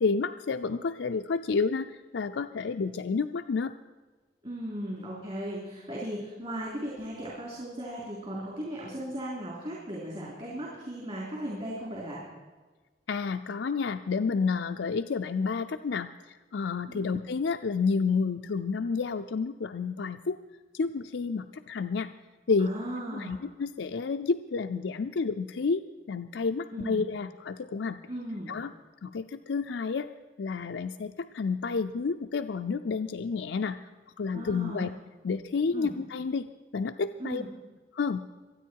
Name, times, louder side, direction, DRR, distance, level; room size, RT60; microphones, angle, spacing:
voice 1, 0.0-3.7 13.1-20.4 20.7-22.1 22.5-22.7 23.1-28.0 28.5-28.7 29.0-30.1 30.4-33.8 34.2-34.9 35.2-36.5 36.7-37.4 37.9-38.2, left 4 dB, 80° left, 6 dB, 0.5 m, -30 dB
voice 2, 4.4-12.2 16.9-17.2 22.6-23.4 26.7-27.0 28.1-28.5 34.3-34.9 35.7-35.9 37.2-37.5, right 1 dB, 35° right, -4 dB, 3.8 m, -37 dB
25.0 x 9.3 x 4.6 m, 1.3 s
head